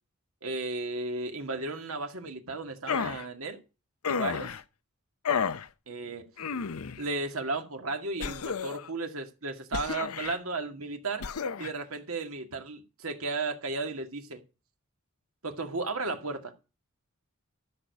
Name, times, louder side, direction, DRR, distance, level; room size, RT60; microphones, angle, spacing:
voice 1, 0.4-3.6 4.1-4.6 5.9-6.3 7.0-11.3 11.6-14.4 15.4-16.5, right 3 dB, 75° right, 2.2 m, -34 dB
sound 1, 2.9-3.2 4.0-4.6 5.3-5.7 6.4-7.0 8.2-8.9 9.7-10.4 11.2-11.7, left 6 dB, 85° left, 0.7 m, -31 dB
13.5 x 6.8 x 4.6 m
head